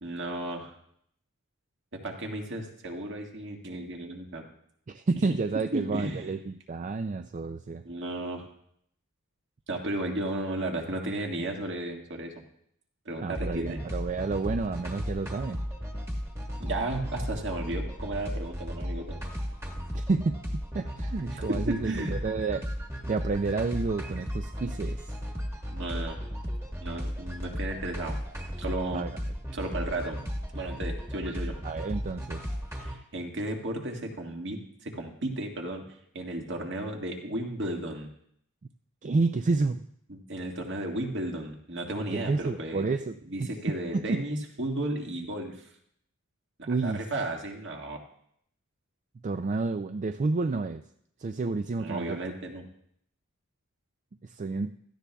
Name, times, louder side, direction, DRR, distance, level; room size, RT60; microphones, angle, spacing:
voice 1, 0.0-0.7 2.0-4.4 5.7-6.3 7.9-8.4 9.7-12.3 13.1-13.8 16.6-19.2 21.3-22.2 25.7-26.2 26.8-28.1 28.6-29.1 29.5-30.2 30.5-31.5 32.8-35.8 36.1-38.1 40.1-42.9 43.3-45.6 46.6-48.0 51.8-52.6, right 1 dB, 55° right, 2 dB, 1.8 m, -34 dB
voice 2, 4.9-7.8 13.2-15.6 19.9-22.7 23.1-25.1 28.9-29.1 31.6-32.4 39.0-39.8 42.1-44.2 46.7-47.0 49.2-50.8 51.2-52.3 54.2-54.7, right 3 dB, 35° right, 8 dB, 0.4 m, -30 dB
sound 1, 13.4-33.0, equal, 15° right, 1.4 m, -35 dB
16.5 x 13.5 x 2.3 m, 0.70 s
head